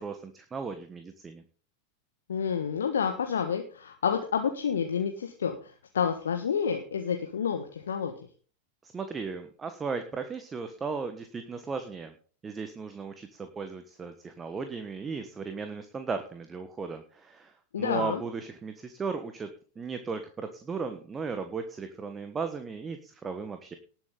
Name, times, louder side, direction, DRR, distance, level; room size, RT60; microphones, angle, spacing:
voice 1, 0.0-1.4 8.8-12.1 12.4-19.5 19.8-23.8, right 5 dB, 20° right, 8 dB, 1.3 m, -36 dB
voice 2, 2.3-8.1 17.7-18.2, left 7 dB, 65° left, 5 dB, 1.4 m, -29 dB
19.0 x 7.6 x 3.9 m, 0.42 s
figure-of-eight pair, 90°, 0 cm